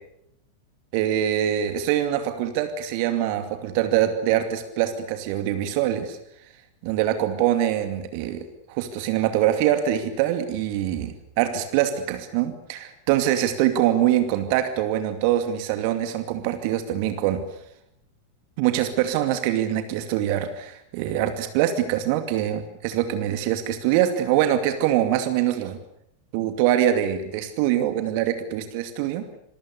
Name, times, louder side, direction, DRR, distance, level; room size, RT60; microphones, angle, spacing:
voice 1, 0.9-6.2 6.8-17.4 18.6-25.8 26.3-29.3, right 11 dB, 45° right, 8 dB, 2.4 m, -24 dB
27.0 x 22.5 x 6.8 m, 0.75 s
figure-of-eight pair, 90°, 0 cm